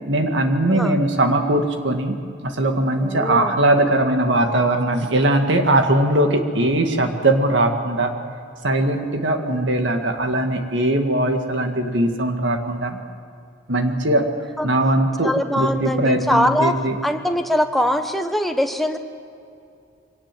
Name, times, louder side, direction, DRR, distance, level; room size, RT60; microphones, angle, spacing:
voice 1, 0.1-2.2 2.4-8.1 8.6-13.0 13.7-14.3 14.6-16.9, right 1 dB, 75° right, 5 dB, 2.0 m, -20 dB
voice 2, 3.0-3.6 14.6-14.7 15.2-16.7 17.0-19.0, equal, ahead, 5 dB, 1.2 m, -22 dB
24.0 x 18.5 x 7.6 m, 2.5 s
head